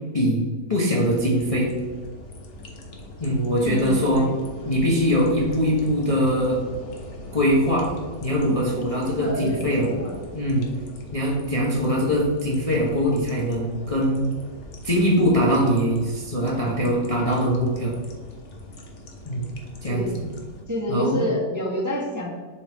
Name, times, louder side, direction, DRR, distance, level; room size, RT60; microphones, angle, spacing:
voice 1, 0.7-1.7 3.2-4.2 4.7-6.6 7.3-7.9 8.2-9.9 10.3-10.7 11.1-14.2 14.8-17.9 19.3-19.4 19.8-20.0 20.9-21.2, equal, 30° left, -4 dB, 0.7 m, -22 dB
sound 1, 0.9-20.6, left 1 dB, 50° left, 1.1 m, -41 dB
voice 2, 3.6-4.3 9.2-10.2 19.9-20.1 20.7-22.3, equal, 15° right, -3 dB, 0.7 m, -28 dB
7.0 x 3.8 x 3.5 m, 1.4 s
omnidirectional pair, 1.8 m